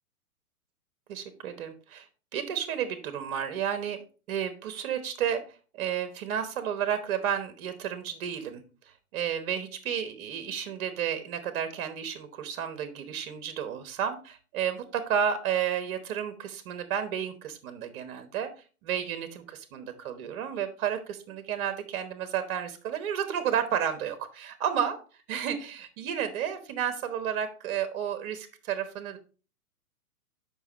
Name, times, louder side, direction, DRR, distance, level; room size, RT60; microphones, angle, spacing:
voice 1, 1.1-2.1 2.3-4.0 4.3-5.4 5.7-18.5 18.8-25.0 25.3-29.2, right 8 dB, 40° right, 10 dB, 1.1 m, -32 dB
7.0 x 5.5 x 4.0 m, 0.36 s
hypercardioid pair, 120°, 45 cm